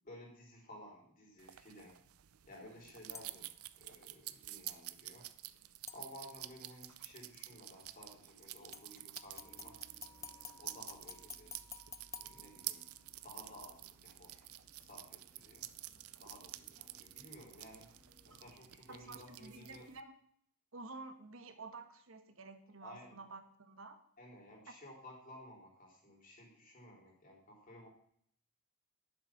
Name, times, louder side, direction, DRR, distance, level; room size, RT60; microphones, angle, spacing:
voice 1, 0.0-2.0 2.5-3.5 3.8-5.3 5.9-9.8 10.6-11.6 12.2-12.8 13.2-14.5 14.8-15.7 16.2-17.9 18.3-19.9 22.8-23.2 24.2-27.9, left 1 dB, 40° left, -1 dB, 3.8 m, -55 dB
sound 1, 1.4-20.0, right 15 dB, 85° right, 0.6 m, -50 dB
sound 2, 3.1-3.6 5.9-6.6 8.7-13.1 13.5-13.6, left 6 dB, 15° left, 0.4 m, -52 dB
sound 3, 9.2-18.4, equal, 35° right, 3.0 m, -66 dB
voice 2, 18.9-20.1 20.7-24.0, right 3 dB, 65° right, 8 dB, 1.2 m, -51 dB
10.5 x 7.6 x 5.9 m, 0.66 s
head